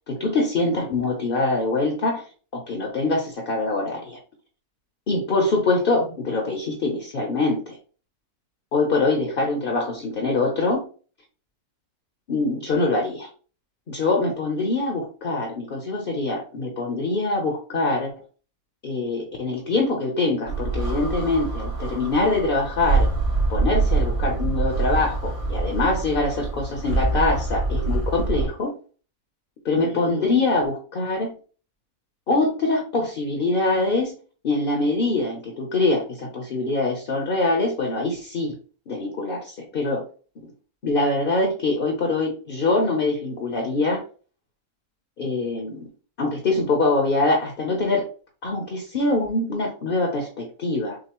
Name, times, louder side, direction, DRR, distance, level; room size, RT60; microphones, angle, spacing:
voice 1, 0.1-2.2 2.5-4.2 5.1-7.8 8.7-10.8 12.3-13.3 13.9-18.1 18.8-23.1 23.5-28.7 29.6-31.3 32.3-34.1 34.4-38.6 38.9-40.0 40.8-44.0 45.2-45.8 46.2-48.0 48.4-51.0, left 2 dB, 45° left, 3 dB, 0.9 m, -24 dB
sound 1, 20.5-28.5, right 3 dB, 65° right, 2.0 m, -25 dB
6.5 x 2.6 x 3.0 m, 0.39 s
omnidirectional pair, 1.6 m